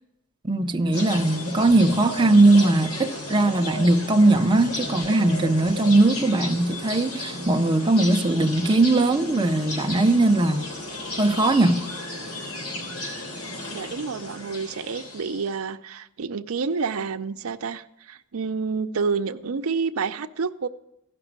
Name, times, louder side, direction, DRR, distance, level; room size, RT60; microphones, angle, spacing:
voice 1, 0.4-10.7 11.2-11.8, right 2 dB, 20° right, 0.5 m, -20 dB
sound 1, 0.6-5.9, left 1 dB, 35° left, 0.9 m, -43 dB
sound 2, 0.9-15.6, left 2 dB, 85° left, 3.0 m, -34 dB
voice 2, 13.7-20.7, right 5 dB, 80° right, 0.6 m, -29 dB
15.0 x 6.0 x 8.7 m
head